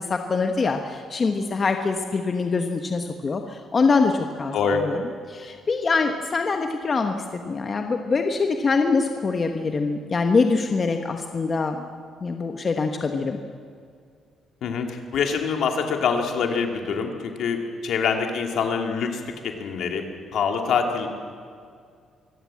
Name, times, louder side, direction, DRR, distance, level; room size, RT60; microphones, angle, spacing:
voice 1, 0.0-5.0 5.3-7.1 7.4-11.9 12.2-13.4, left 4 dB, 40° left, 5 dB, 1.3 m, -24 dB
voice 2, 4.5-4.8 14.6-19.2 19.6-20.0 20.3-21.1, left 6 dB, 70° left, 4 dB, 2.8 m, -25 dB
24.0 x 17.0 x 7.7 m, 2.2 s
cardioid pair, 90°, 0 cm